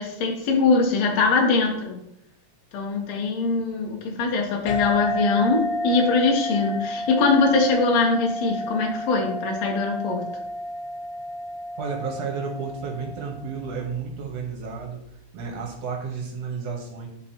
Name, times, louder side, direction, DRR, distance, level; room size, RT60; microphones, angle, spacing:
voice 1, 0.0-2.0 2.7-10.2, left 4 dB, 65° left, 1 dB, 2.2 m, -22 dB
sound 1, 4.7-13.7, left 1 dB, 85° left, 2.8 m, -31 dB
voice 2, 11.8-17.1, right 5 dB, 60° right, 1 dB, 2.1 m, -32 dB
9.7 x 4.6 x 2.9 m, 0.77 s
omnidirectional pair, 3.7 m